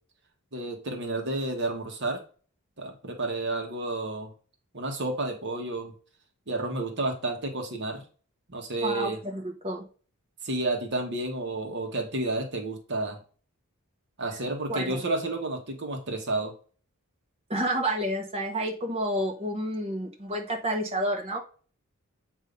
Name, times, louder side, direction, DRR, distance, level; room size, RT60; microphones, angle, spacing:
voice 1, 0.5-2.2 2.8-4.3 4.7-5.9 6.5-8.0 8.5-9.2 10.4-13.2 14.2-16.5, right 2 dB, 55° right, 3 dB, 1.2 m, -31 dB
voice 2, 8.8-9.8 14.7-15.0 17.5-21.4, right 1 dB, 30° right, 0 dB, 1.2 m, -30 dB
8.1 x 2.8 x 5.2 m, 0.39 s
head